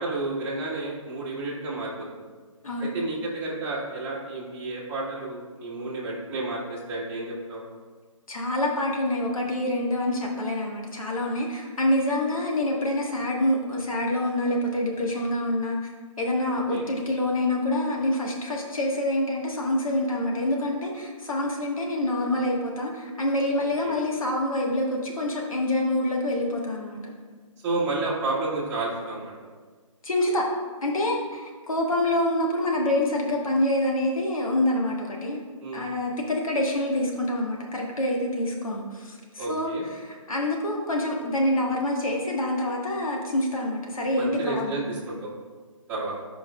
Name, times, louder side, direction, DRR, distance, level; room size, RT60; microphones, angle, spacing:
voice 1, 0.0-2.2 2.8-7.6 16.7-16.9 23.5-24.0 27.6-29.3 35.6-35.9 39.4-39.8 44.2-45.3 45.9-46.1, right 2 dB, 10° right, -8 dB, 1.7 m, -31 dB
voice 2, 8.3-15.9 16.2-27.1 30.0-30.5 30.8-35.4 35.7-44.9, left 1 dB, 85° left, -1 dB, 1.6 m, -26 dB
14.5 x 5.2 x 2.4 m, 1.5 s
hypercardioid pair, 155°, 17 cm